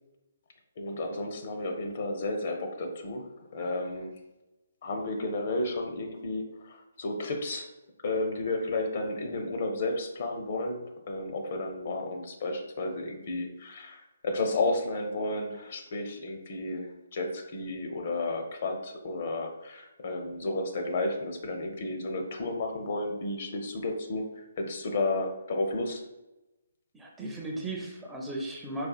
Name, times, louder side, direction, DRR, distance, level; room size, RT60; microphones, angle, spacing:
voice 1, 0.8-3.3 3.5-4.1 4.8-7.7 8.0-26.0, left 2 dB, 50° left, 3 dB, 0.6 m, -32 dB
voice 2, 26.9-28.9, right 2 dB, 10° right, -2 dB, 0.5 m, -36 dB
4.1 x 2.4 x 2.3 m, 0.99 s
hypercardioid pair, 150°, 0 cm